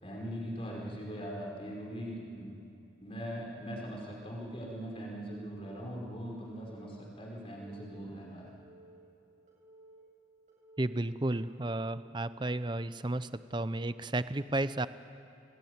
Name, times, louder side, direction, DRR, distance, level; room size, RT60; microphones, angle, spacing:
voice 1, 0.0-2.5 3.0-8.5, equal, 30° left, -1 dB, 5.1 m, -41 dB
Telephone, 4.4-4.9 5.4-5.9 6.4-7.0 7.4-8.0 8.5-9.0 9.5-10.0 10.5-11.0 11.5-12.0, right 1 dB, 40° right, 7.5 m, -57 dB
voice 2, 10.8-14.9, right 2 dB, 25° right, 13 dB, 0.7 m, -33 dB
29.0 x 21.0 x 9.6 m, 2.7 s
head